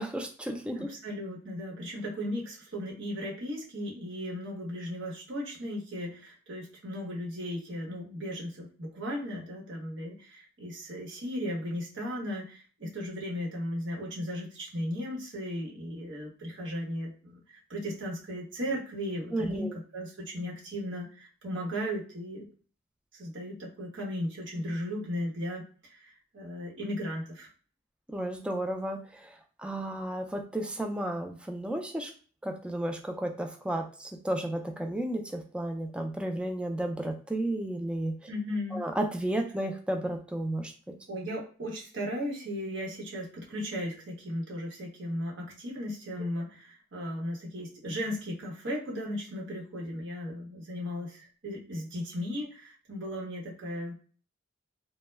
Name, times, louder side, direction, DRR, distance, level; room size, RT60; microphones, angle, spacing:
voice 1, 0.0-0.9 19.3-19.7 28.1-32.1 32.4-38.1 38.7-40.7, right 1 dB, 5° right, 3 dB, 0.3 m, -33 dB
voice 2, 0.8-22.5 23.1-27.5 38.3-38.8 41.1-54.0, equal, 70° right, -3 dB, 1.0 m, -36 dB
2.1 x 2.1 x 3.2 m, 0.40 s
head